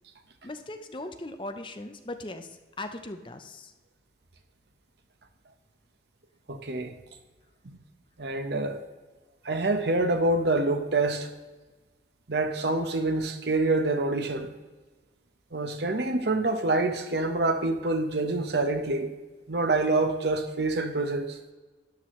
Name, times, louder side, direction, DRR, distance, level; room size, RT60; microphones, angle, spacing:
voice 1, 0.4-3.7, left 2 dB, 25° left, 0.7 m, -39 dB
voice 2, 6.5-6.9 7.6-7.8 8.2-8.8 9.4-11.3 12.3-14.5 15.5-19.1 19.5-21.4, right 2 dB, 70° right, 1.0 m, -26 dB
13.0 x 10.5 x 3.1 m
head